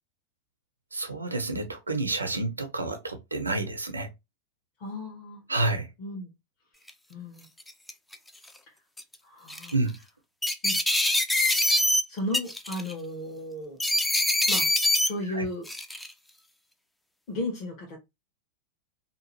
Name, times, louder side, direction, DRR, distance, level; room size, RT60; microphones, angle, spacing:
voice 1, 0.9-4.1 5.5-5.9 9.7-9.9 15.3-15.4, right 2 dB, 80° right, 0.6 m, -29 dB
voice 2, 4.8-5.4 6.0-6.3 7.1-7.5 9.2-9.8 10.6-10.8 12.1-13.8 14.5-14.7 15.0-15.7 17.3-18.0, left 1 dB, 40° left, 1.0 m, -34 dB
sound 1, 6.9-7.0 7.6-8.1 9.0-9.1 9.5-9.7 10.4-12.0 12.3-12.9 13.8-15.1 15.7-16.1, left 1 dB, 5° left, 0.3 m, -24 dB
2.8 x 2.4 x 3.0 m
figure-of-eight pair, 90°, 0 cm